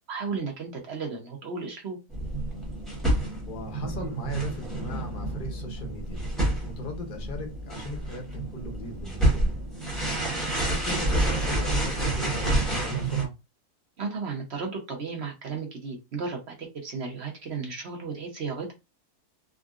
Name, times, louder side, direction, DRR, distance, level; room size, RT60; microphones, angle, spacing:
voice 1, 0.1-2.0 14.0-18.7, right 4 dB, 50° right, 0.9 m, -34 dB
sound 1, 2.1-13.2, right 1 dB, ahead, 0.9 m, -28 dB
voice 2, 3.4-9.6 10.3-13.3, left 2 dB, 45° left, 0.8 m, -39 dB
3.6 x 2.1 x 2.4 m
omnidirectional pair, 1.6 m